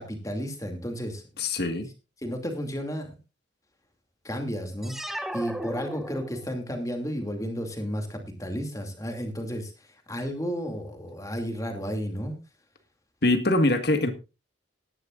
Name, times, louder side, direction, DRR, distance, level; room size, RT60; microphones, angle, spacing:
voice 1, 0.0-1.2 2.2-3.2 4.2-12.4, equal, 15° left, 4 dB, 2.5 m, -33 dB
voice 2, 1.4-1.9 13.2-14.1, left 2 dB, 55° left, 8 dB, 1.7 m, -23 dB
sound 1, 4.8-6.7, equal, ahead, 0.9 m, -35 dB
18.0 x 11.0 x 2.5 m, 0.28 s
head